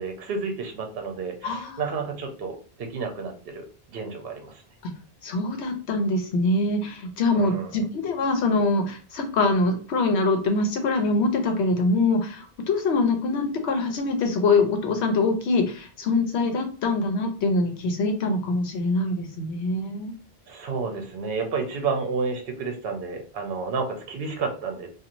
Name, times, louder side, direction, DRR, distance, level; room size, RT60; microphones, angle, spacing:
voice 1, 0.0-3.6 3.9-4.6 7.3-7.7 20.5-24.9, right 4 dB, 65° right, 4 dB, 0.8 m, -31 dB
voice 2, 1.4-1.8 4.8-4.9 5.2-20.1, left 3 dB, 80° left, 4 dB, 1.0 m, -24 dB
2.9 x 2.4 x 2.5 m, 0.38 s
omnidirectional pair, 1.1 m